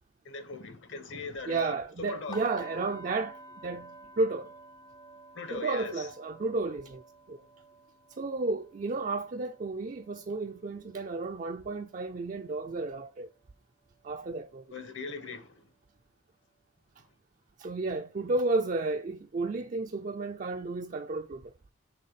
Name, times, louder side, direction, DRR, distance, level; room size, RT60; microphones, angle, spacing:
voice 1, 0.2-2.4 5.3-6.1 14.7-15.7, left 4 dB, 70° left, 1.3 m, -40 dB
voice 2, 1.5-3.9 4.2-4.5 5.5-7.0 7.3-7.4 8.1-13.3 14.0-14.6 17.6-21.5, right 3 dB, 40° right, 0.4 m, -32 dB
sound 1, 2.3-12.2 12.6-12.9 13.3-13.4, right 1 dB, 20° left, 0.4 m, -51 dB
6.6 x 3.9 x 5.6 m
head